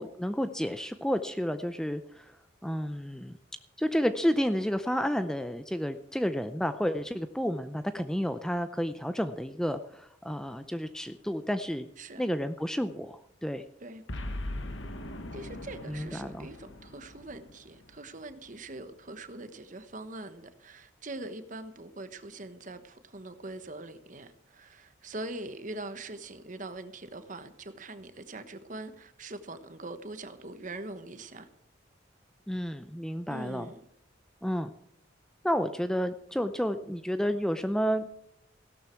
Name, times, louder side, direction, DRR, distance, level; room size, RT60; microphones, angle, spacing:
voice 1, 0.0-2.3 2.6-3.3 3.8-11.9 12.2-13.6 15.9-16.5 32.5-33.7 34.4-34.7 35.4-38.1, equal, 5° left, 0.5 m, -31 dB
Boom, 14.1-18.5, left 1 dB, 75° left, 1.5 m, -40 dB
voice 2, 15.3-31.5 33.3-33.8, right 2 dB, 40° right, 1.1 m, -42 dB
16.5 x 12.0 x 4.5 m
head